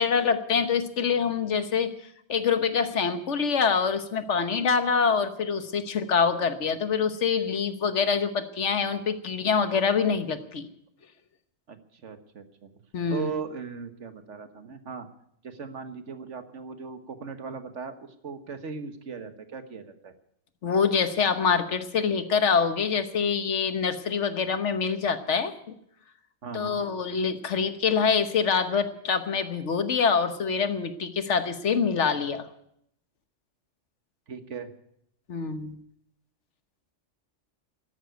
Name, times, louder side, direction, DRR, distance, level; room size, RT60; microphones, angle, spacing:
voice 1, 0.0-1.9 2.3-10.7 12.9-13.3 20.6-25.7 26.5-32.5 35.3-35.8, left 6 dB, 70° left, 10 dB, 1.5 m, -25 dB
voice 2, 11.7-12.7 13.1-15.1 15.4-20.1 26.4-26.8 34.3-34.7, right 5 dB, 75° right, 8 dB, 1.7 m, -38 dB
13.0 x 11.5 x 9.3 m, 0.73 s
omnidirectional pair, 1.2 m